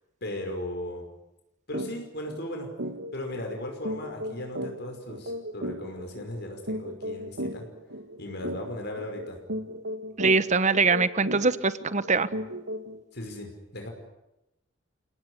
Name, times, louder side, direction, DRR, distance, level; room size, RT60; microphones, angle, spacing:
voice 1, 0.2-1.0 1.7-2.7 3.1-7.6 8.2-9.4 13.1-13.9, left 1 dB, 60° left, 3 dB, 5.5 m, -37 dB
sound 1, 1.7-1.9 2.3-2.4 2.8-13.0, equal, 80° right, 2.5 m, -36 dB
voice 2, 10.2-12.3, right 4 dB, 40° right, 14 dB, 1.2 m, -23 dB
30.0 x 18.5 x 10.0 m, 0.91 s
head